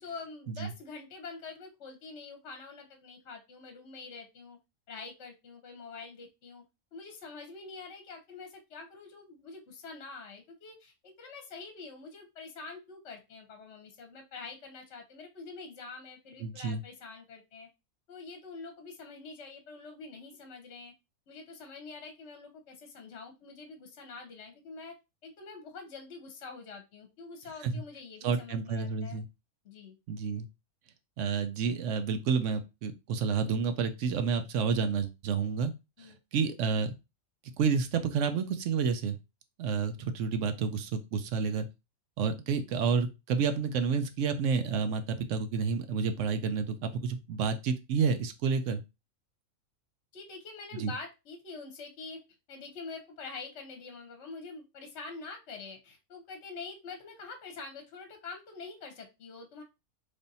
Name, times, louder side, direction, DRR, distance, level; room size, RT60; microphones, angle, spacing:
voice 1, 0.0-4.6 4.9-6.6 6.9-17.7 18.1-20.9 21.3-24.9 25.2-29.2 29.6-30.0 36.0-36.2 50.1-52.2 52.5-59.6, left 4 dB, 55° left, 4 dB, 1.0 m, -45 dB
voice 2, 16.4-16.8 27.6-27.8 28.2-29.3 30.1-30.5 31.2-35.7 36.0-36.9 37.6-39.2 39.6-41.7 42.2-48.8 50.8-50.9, right 5 dB, 65° right, 8 dB, 0.9 m, -30 dB
3.4 x 2.6 x 4.0 m, 0.25 s
omnidirectional pair, 1.5 m